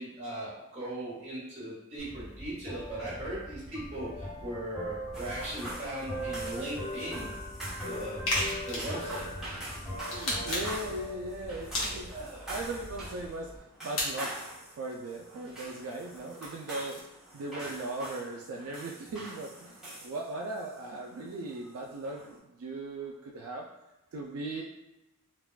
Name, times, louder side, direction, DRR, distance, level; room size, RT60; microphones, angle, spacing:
voice 1, 0.0-7.3 7.8-9.3 12.1-12.5, right 1 dB, 30° right, -9 dB, 1.4 m, -39 dB
sound 1, 2.0-13.6, equal, 35° left, 1.1 m, -41 dB
sound 2, 5.1-22.4, right 1 dB, 5° right, 0.9 m, -45 dB
sound 3, 8.3-9.0 10.0-10.9 11.7-12.3 14.0-14.1 16.0-17.1, left 1 dB, 65° left, 1.0 m, -33 dB
voice 2, 10.1-13.5 13.8-14.4 14.7-17.1 17.3-23.7 24.1-24.6, right 2 dB, 70° right, 0 dB, 0.3 m, -38 dB
3.5 x 2.2 x 2.2 m, 0.97 s
head